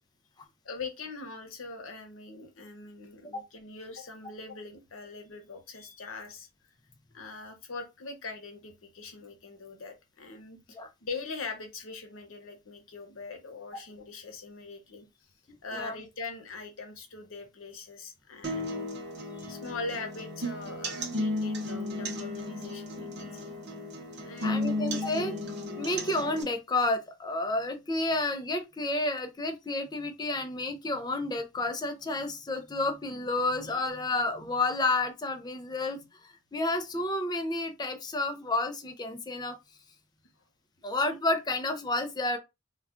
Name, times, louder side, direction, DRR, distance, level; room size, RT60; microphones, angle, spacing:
voice 1, 0.6-6.5 7.1-15.1 15.6-18.9 19.5-23.5 24.2-24.8 25.9-26.0, left 3 dB, 80° left, 0.8 m, -42 dB
sound 1, 18.4-26.4, left 1 dB, 55° right, 0.7 m, -34 dB
voice 2, 24.4-25.3 25.8-39.6 40.8-42.4, left 2 dB, 20° left, 0.4 m, -30 dB
2.3 x 2.3 x 3.6 m
head